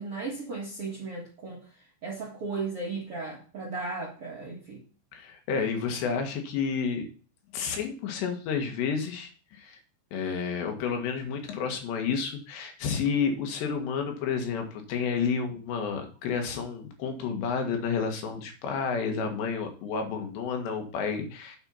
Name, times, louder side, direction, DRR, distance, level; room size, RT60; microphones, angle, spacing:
voice 1, 0.0-4.8, right 3 dB, 55° right, -3 dB, 1.7 m, -36 dB
voice 2, 5.1-7.0 7.5-9.8 10.1-21.6, left 6 dB, 75° left, 4 dB, 3.8 m, -30 dB
9.0 x 5.5 x 5.7 m, 0.39 s
omnidirectional pair, 5.2 m